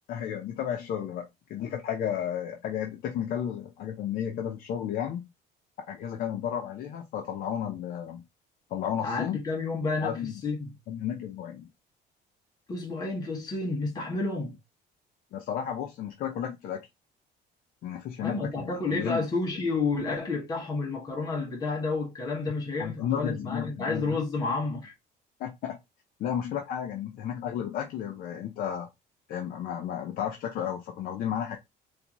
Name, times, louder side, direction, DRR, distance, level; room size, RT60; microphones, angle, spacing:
voice 1, 0.1-5.3 5.9-8.2 8.7-9.4 10.0-10.4 10.9-11.7 15.3-16.8 17.8-19.2 22.8-24.2 25.4-25.8 26.2-28.9 29.3-31.6, left 9 dB, 55° left, 0.6 m, -33 dB
voice 2, 9.0-10.7 12.7-14.6 18.2-24.9, left 3 dB, 20° left, 1.1 m, -30 dB
4.2 x 2.6 x 2.9 m
cardioid pair, 170°, 17 cm